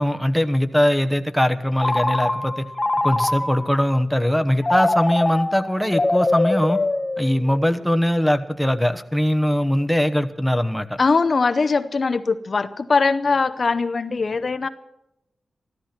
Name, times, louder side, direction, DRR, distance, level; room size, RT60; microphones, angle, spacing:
voice 1, 0.0-2.7 3.0-6.8 7.2-10.9, equal, ahead, 9 dB, 1.0 m, -21 dB
Telephone, 1.8-3.8 4.6-7.7, left 2 dB, 25° left, 1.1 m, -23 dB
voice 2, 11.0-14.7, left 4 dB, 50° left, 11 dB, 0.7 m, -21 dB
14.5 x 13.5 x 5.9 m, 0.86 s
wide cardioid pair, 95°, 0 cm